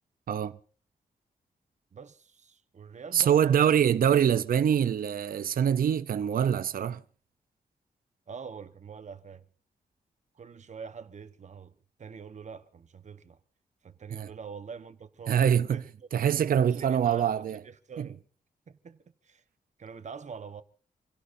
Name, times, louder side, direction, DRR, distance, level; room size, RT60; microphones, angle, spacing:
voice 1, 0.3-0.6 3.1-7.0 14.1-14.3 15.3-15.8 16.1-17.6 18.0-18.1, right 9 dB, 70° right, 0.7 m, -24 dB
voice 2, 1.9-3.9 8.3-9.5 10.3-13.4 13.8-16.1 16.7-18.2 18.7-19.4 19.8-20.6, right 6 dB, 50° right, 1.2 m, -45 dB
29.0 x 17.0 x 2.7 m
wide cardioid pair, 115°, 15 cm